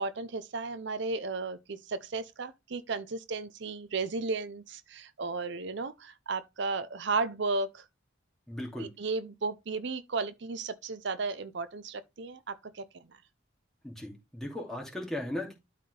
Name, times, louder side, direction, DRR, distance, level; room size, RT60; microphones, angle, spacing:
voice 1, 0.0-7.8 8.8-12.8, right 3 dB, 65° right, 0.6 m, -34 dB
voice 2, 8.5-8.9 13.8-15.6, left 1 dB, 5° left, 2.6 m, -37 dB
12.5 x 4.1 x 3.3 m
head